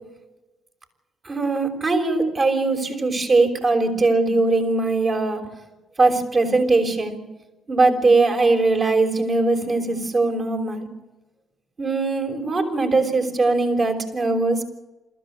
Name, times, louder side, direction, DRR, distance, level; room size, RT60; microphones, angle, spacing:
voice 1, 1.2-5.4 6.0-7.2 7.7-10.9 11.8-14.6, right 3 dB, 40° right, 4 dB, 5.8 m, -20 dB
26.0 x 15.0 x 9.0 m, 1.1 s
supercardioid pair, 70°, 0 cm